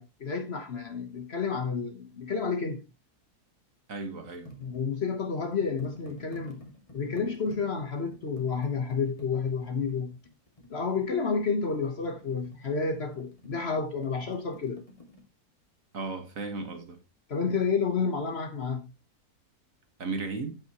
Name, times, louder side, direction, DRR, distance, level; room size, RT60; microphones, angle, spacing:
voice 1, 0.0-2.8 4.6-6.6 6.9-10.2 10.7-14.8 17.3-18.9, left 5 dB, 45° left, 1.2 m, -30 dB
voice 2, 3.9-4.5 15.9-17.0 20.0-20.6, right 3 dB, 55° right, 1.8 m, -35 dB
sound 1, 4.5-15.2, left 1 dB, 20° left, 2.0 m, -50 dB
14.5 x 5.5 x 2.9 m
omnidirectional pair, 1.7 m